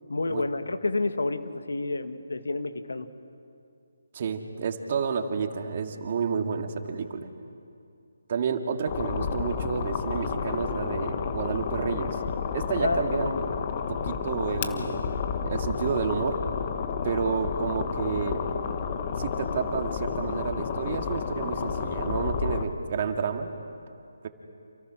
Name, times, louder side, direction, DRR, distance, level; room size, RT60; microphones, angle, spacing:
voice 1, 0.1-3.1 12.8-13.4, left 3 dB, 80° left, 8 dB, 1.9 m, -29 dB
voice 2, 4.1-7.3 8.3-12.2 12.5-13.4 13.9-15.0 15.4-16.4 17.0-18.4 19.2-23.5, right 6 dB, 40° right, 5 dB, 2.2 m, -30 dB
sound 1, 8.9-22.7, left 6 dB, 35° left, 1.5 m, -31 dB
29.0 x 28.5 x 6.3 m, 2.5 s
figure-of-eight pair, 155°, 0 cm